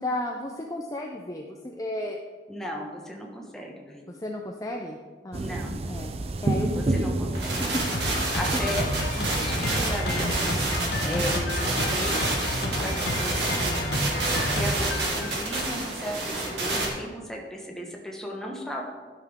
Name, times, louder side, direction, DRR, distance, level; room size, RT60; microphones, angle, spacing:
voice 1, 0.0-2.2 4.1-5.0 5.2-5.6 5.9-6.1 6.4-7.1 7.6-7.7 8.1-8.6 10.8-11.2, left 1 dB, 20° left, 1 dB, 0.5 m, -34 dB
voice 2, 2.5-4.1 5.3-5.7 6.7-7.6 8.3-8.9 9.1-10.7 11.1-13.6 14.3-18.8, equal, 5° left, -1 dB, 1.1 m, -36 dB
sound 1, 5.3-10.9, right 2 dB, 35° right, 0.4 m, -31 dB
sound 2, 7.3-16.9, right 2 dB, 75° right, 1.8 m, -29 dB
Drum kit, 7.9-15.7, left 1 dB, 70° left, 1.3 m, -30 dB
12.0 x 5.9 x 3.6 m, 1.4 s
head